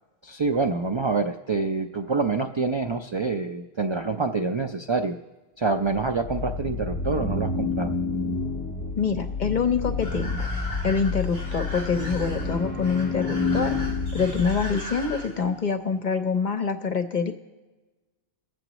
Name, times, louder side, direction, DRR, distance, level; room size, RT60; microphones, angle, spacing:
voice 1, 0.2-5.2 5.6-7.9, right 4 dB, 45° right, 5 dB, 0.4 m, -26 dB
sound 1, 5.9-15.2, left 3 dB, 25° left, 1.7 m, -29 dB
voice 2, 9.0-10.5 10.8-17.3, left 5 dB, 50° left, 6 dB, 0.9 m, -26 dB
sound 2, 10.0-15.6, left 1 dB, 25° right, 4.5 m, -39 dB
23.0 x 7.8 x 3.0 m, 1.2 s
omnidirectional pair, 1.1 m